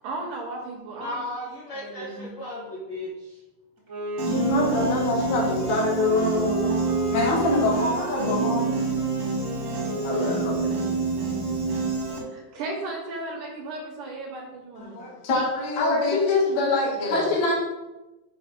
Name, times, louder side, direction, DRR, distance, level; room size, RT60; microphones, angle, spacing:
voice 1, 0.0-1.2 1.7-2.3 12.2-15.1, right 2 dB, 75° right, 0 dB, 2.0 m, -35 dB
voice 2, 0.9-3.4, left 1 dB, 90° left, -6 dB, 1.5 m, -35 dB
Wind instrument woodwind instrument, 3.8-10.9, equal, 40° right, 1.1 m, -35 dB
Piano, 4.2-12.2, right 4 dB, 55° right, 1.6 m, -27 dB
voice 3, 4.3-6.9 10.0-10.8 11.2-11.4 15.8-17.5, left 2 dB, 75° left, -3 dB, 3.2 m, -25 dB
voice 4, 7.1-8.6 14.8-16.2 16.9-17.3, left 2 dB, 55° left, -5 dB, 2.3 m, -26 dB
7.1 x 2.8 x 5.8 m, 1.0 s
omnidirectional pair, 4.8 m